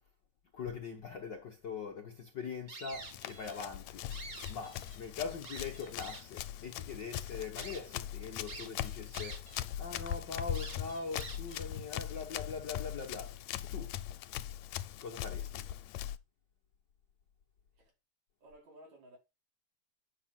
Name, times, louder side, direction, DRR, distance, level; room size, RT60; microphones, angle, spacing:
voice 1, 0.5-13.9 15.0-15.7, left 5 dB, 55° left, 1.3 m, -42 dB
sound 1, 2.7-3.6 4.0-5.0 5.4-6.4 7.0-7.1 7.6-7.8 8.5-9.6 9.9-10.0 10.5-11.6, right 3 dB, 35° right, 2.1 m, -48 dB
Run, 2.9-16.2, left 11 dB, 80° left, 1.9 m, -41 dB
voice 2, 18.4-19.2, right 1 dB, 70° right, 5.8 m, -56 dB
10.0 x 6.2 x 5.9 m
omnidirectional pair, 3.3 m